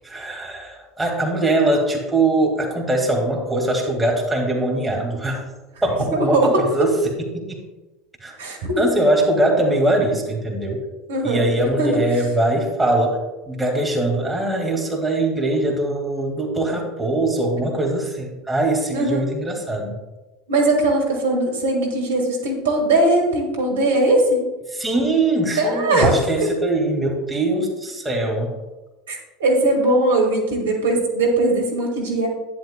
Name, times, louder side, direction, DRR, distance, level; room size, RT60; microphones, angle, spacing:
voice 1, 0.0-5.5 5.8-7.7 8.2-8.4 8.8-10.8 11.2-13.2 13.5-20.0 24.7-28.6, right 2 dB, 10° right, 0 dB, 1.9 m, -22 dB
voice 2, 6.1-6.5 8.4-8.8 11.1-11.5 11.8-12.0 18.9-19.3 20.5-24.4 25.6-26.1 29.1-32.3, right 2 dB, 70° right, 0 dB, 1.8 m, -20 dB
11.0 x 10.0 x 2.2 m, 1.1 s
figure-of-eight pair, 75°, 0 cm